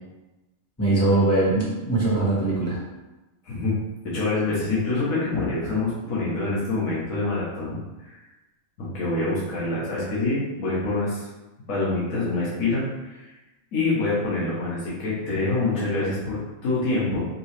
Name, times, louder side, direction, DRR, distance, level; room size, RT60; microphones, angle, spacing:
voice 1, 0.8-2.8, right 2 dB, 10° left, -8 dB, 1.5 m, -21 dB
voice 2, 4.0-8.2 8.8-11.3 11.7-13.3 13.7-17.2, left 2 dB, 85° left, -7 dB, 1.5 m, -26 dB
5.3 x 2.8 x 3.3 m, 1.1 s
omnidirectional pair, 1.4 m